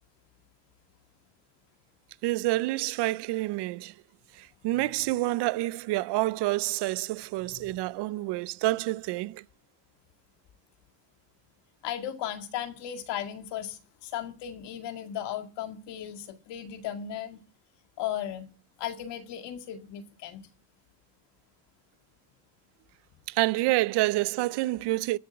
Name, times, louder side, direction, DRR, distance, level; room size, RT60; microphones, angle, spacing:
voice 1, 2.2-3.9 4.3-9.4 23.3-25.2, right 18 dB, 75° right, 0.6 m, -28 dB
voice 2, 7.4-7.8 11.8-17.4 18.0-18.5 18.8-20.5, left 10 dB, 80° left, 2.2 m, -36 dB
14.5 x 7.7 x 6.9 m
cardioid pair, 115°, 41 cm